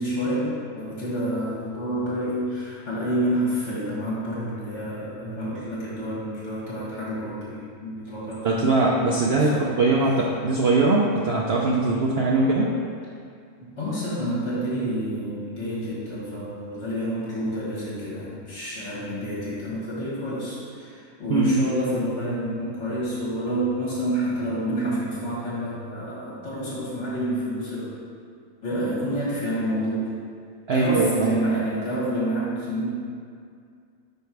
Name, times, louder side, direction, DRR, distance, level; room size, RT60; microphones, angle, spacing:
voice 1, 0.0-8.7 9.4-9.8 13.6-28.0 28.6-30.1 30.7-32.9, equal, 50° left, -9 dB, 2.1 m, -28 dB
voice 2, 8.4-12.7 21.3-21.6 30.7-31.3, right 3 dB, 65° right, -2 dB, 0.6 m, -21 dB
5.6 x 4.6 x 4.5 m, 2.2 s
omnidirectional pair, 1.6 m